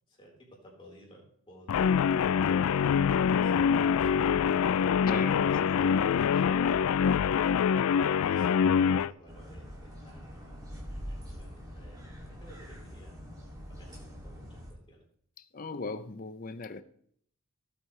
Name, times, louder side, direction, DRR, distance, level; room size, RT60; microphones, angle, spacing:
voice 1, 0.6-4.8 5.5-7.5 8.0-10.6 10.9-12.1 12.4-13.2 13.7-14.6 14.9-15.1, right 1 dB, 25° left, 4.1 m, -55 dB
Guitar, 1.7-9.1, left 7 dB, 80° left, 0.3 m, -25 dB
voice 2, 3.1-3.4 5.0-6.1 15.5-16.8, left 3 dB, 40° left, 0.6 m, -38 dB
sound 1, 9.3-14.7, equal, 15° right, 2.6 m, -44 dB
16.5 x 8.5 x 3.2 m
head